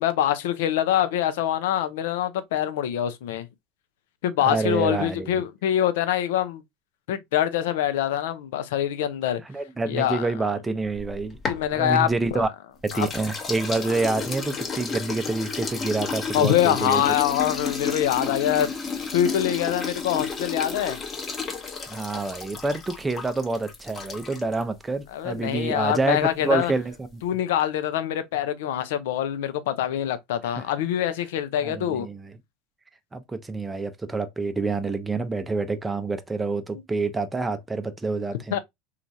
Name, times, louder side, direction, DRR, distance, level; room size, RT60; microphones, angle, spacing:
voice 1, 0.0-3.5 4.2-6.6 7.1-9.4 9.9-10.3 11.5-12.4 12.9-13.1 16.3-18.7 19.1-21.0 25.1-26.7 27.2-32.1 38.5-38.6, left 11 dB, 75° left, 0.4 m, -24 dB
voice 2, 4.4-5.4 9.5-11.4 11.7-12.5 12.8-17.0 21.9-27.2 30.6-30.7 31.6-32.3 33.1-38.6, right 3 dB, 15° right, 0.5 m, -27 dB
sound 1, 10.9-12.5 12.9-24.6, left 5 dB, 30° left, 0.8 m, -32 dB
3.0 x 2.4 x 2.5 m
hypercardioid pair, 90°, 0 cm